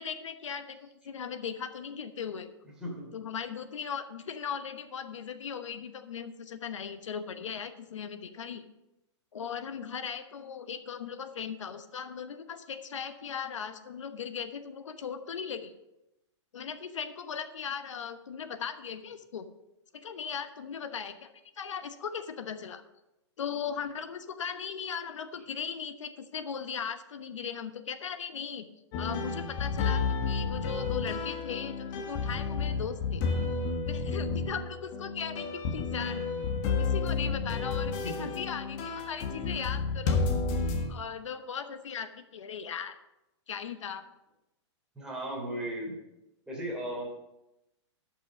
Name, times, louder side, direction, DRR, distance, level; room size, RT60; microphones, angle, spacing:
voice 1, 0.0-2.5 3.1-8.6 9.3-15.7 16.5-19.5 19.9-21.3 21.6-22.8 23.4-28.7 29.0-33.2 33.9-36.2 36.8-40.2 40.9-43.0 43.5-44.0, left 7 dB, 90° left, 9 dB, 1.1 m, -38 dB
voice 2, 2.8-3.1 38.0-38.3 44.9-45.9 46.5-47.1, right 1 dB, 5° right, -4 dB, 3.2 m, -36 dB
sound 1, 28.9-40.9, left 4 dB, 40° left, 1.5 m, -31 dB
12.0 x 6.1 x 5.2 m, 0.92 s
hypercardioid pair, 150°, 15 cm